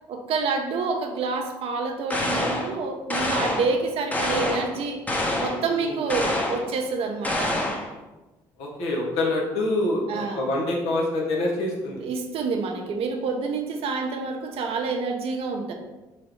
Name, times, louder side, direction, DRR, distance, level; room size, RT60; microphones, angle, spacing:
voice 1, 0.1-5.0 5.4-7.5 10.1-10.4 12.0-15.7, right 4 dB, 65° right, 3 dB, 0.6 m, -28 dB
sound 1, 2.1-2.7 3.1-3.7 4.1-4.7 5.1-5.6 6.1-6.7 7.2-7.9, left 1 dB, 15° left, 0.7 m, -26 dB
voice 2, 5.7-6.0 8.6-12.0, left 2 dB, 80° left, -1 dB, 0.9 m, -26 dB
3.2 x 2.6 x 4.4 m, 1.1 s
supercardioid pair, 70°, 10 cm